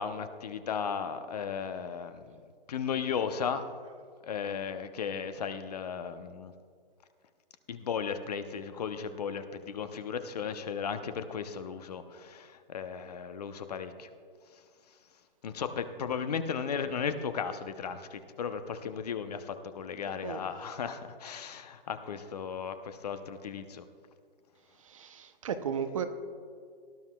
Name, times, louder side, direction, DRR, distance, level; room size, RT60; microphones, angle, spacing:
voice 1, 0.0-2.4 2.7-3.6 4.3-6.5 7.7-14.1 15.4-23.8, left 6 dB, 45° left, 10 dB, 0.7 m, -35 dB
voice 2, 24.9-26.0, right 7 dB, 35° right, 9 dB, 0.6 m, -34 dB
18.5 x 11.5 x 2.3 m, 2.1 s
hypercardioid pair, 160°, 29 cm